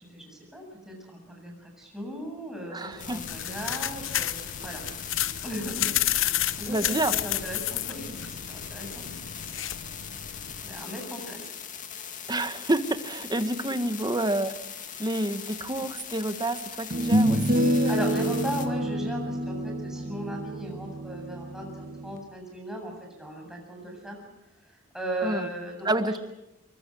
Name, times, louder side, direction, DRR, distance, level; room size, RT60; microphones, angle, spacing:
voice 1, 0.0-4.8 5.4-5.9 6.2-9.1 10.6-11.5 17.5-24.2 24.6-26.2, right 1 dB, ahead, 0 dB, 7.7 m, -37 dB
voice 2, 2.7-3.2 6.7-7.1 12.3-14.5 15.0-18.3 25.2-25.5 25.8-26.2, right 1 dB, 20° right, 10 dB, 1.4 m, -29 dB
sound 1, 2.9-10.8, left 12 dB, 85° left, 0.9 m, -31 dB
sound 2, 3.0-18.7, left 8 dB, 40° left, 2.4 m, -40 dB
sound 3, 15.8-15.9 16.9-22.2, equal, 45° right, 1.6 m, -27 dB
23.5 x 23.5 x 7.8 m, 0.93 s
head